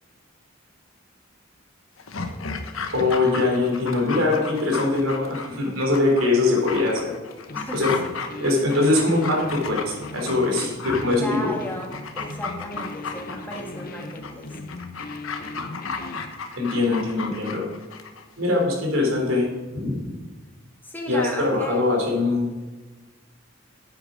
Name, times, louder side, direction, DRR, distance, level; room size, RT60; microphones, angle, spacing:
Dog, 2.0-18.2 18.5-18.6, left 4 dB, 80° left, 1.1 m, -34 dB
voice 1, 2.9-7.1 7.7-7.9 8.4-11.5 16.6-17.6 18.4-20.1 21.1-22.5, left 2 dB, 80° right, 0 dB, 3.7 m, -22 dB
sound 1, 7.5-16.3, left 2 dB, 45° left, 0.8 m, -38 dB
voice 2, 7.5-7.9 11.1-14.6 20.8-22.0, equal, 10° left, 0 dB, 1.8 m, -34 dB
10.5 x 8.6 x 5.1 m, 1.2 s
head